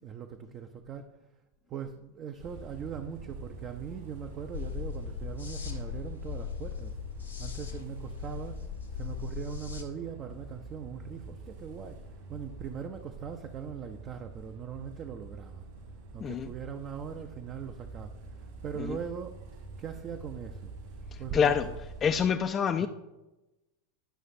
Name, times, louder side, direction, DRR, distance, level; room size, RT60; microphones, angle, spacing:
voice 1, 0.0-1.1 1.7-6.9 7.4-8.6 8.9-12.0 12.3-15.6 16.1-19.4 19.8-20.7 21.2-21.8 22.2-22.3 22.8-22.9, right 7 dB, 35° right, 6 dB, 0.5 m, -40 dB
sound 1, 2.4-22.3, right 3 dB, 60° right, 2.1 m, -46 dB
sound 2, 4.5-9.8, left 8 dB, 90° left, 1.1 m, -38 dB
voice 2, 21.1-21.7 22.0-22.9, left 7 dB, 30° left, 6 dB, 0.4 m, -27 dB
11.0 x 5.7 x 2.6 m, 1.0 s
figure-of-eight pair, 90°, 0 cm